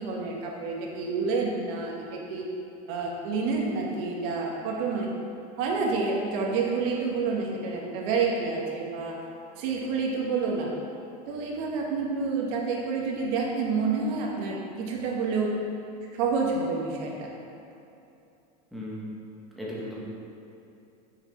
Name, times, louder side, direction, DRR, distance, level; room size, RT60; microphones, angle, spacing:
voice 1, 0.0-2.4 2.9-5.1 5.6-9.2 9.6-10.7 11.3-15.5 16.1-17.3, right 4 dB, 60° right, -1 dB, 1.3 m, -28 dB
voice 2, 18.7-19.1 19.6-20.0, left 1 dB, ahead, -7 dB, 1.4 m, -36 dB
6.6 x 4.7 x 4.5 m, 2.8 s
supercardioid pair, 135°, 21 cm